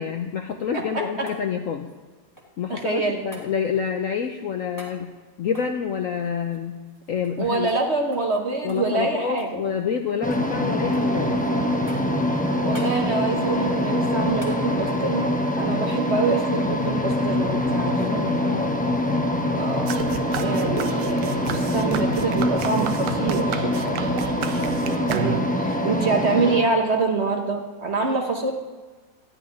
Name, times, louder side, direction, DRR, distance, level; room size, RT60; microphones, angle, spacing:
voice 1, 0.0-1.9 2.6-5.1 5.4-6.8 7.1-7.7 8.6-11.4 18.0-18.8 23.6-24.7, left 7 dB, 65° left, 5 dB, 0.8 m, -28 dB
voice 2, 0.7-1.0 2.7-3.2 7.4-9.6 12.6-15.3 15.6-18.3 19.6-19.9 20.4-23.7 25.1-28.5, right 3 dB, 45° right, 3 dB, 1.0 m, -25 dB
sound 1, 0.9-2.7 3.3-3.5 4.7-5.0 5.5-7.4 7.7-7.8 8.1-8.3 8.7-9.6 9.9-10.5 10.9-11.4 11.9-12.2 12.7-13.0 14.4-14.6 17.0-17.1, equal, 10° right, 1.5 m, -46 dB
sound 2, 10.2-26.6, left 1 dB, 10° left, 0.4 m, -24 dB
sound 3, 19.9-25.7, right 8 dB, 75° right, 1.4 m, -32 dB
13.0 x 5.7 x 9.3 m, 1.3 s
omnidirectional pair, 2.0 m